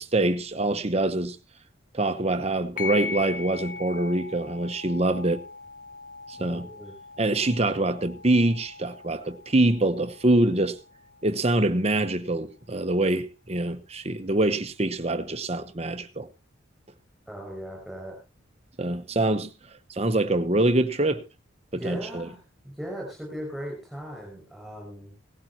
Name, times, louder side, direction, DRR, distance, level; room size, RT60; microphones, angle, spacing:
voice 1, 0.0-1.4 1.9-5.4 6.3-6.7 7.2-10.8 11.2-16.3 18.8-19.5 19.9-21.2 21.7-22.3, right 2 dB, 30° right, 0.9 m, -25 dB
sound 1, 2.8-11.8, left 4 dB, 40° left, 1.0 m, -40 dB
voice 2, 6.5-6.9 17.3-18.1 21.7-22.4 22.6-25.1, equal, ahead, 6.1 m, -38 dB
17.5 x 13.5 x 3.0 m
head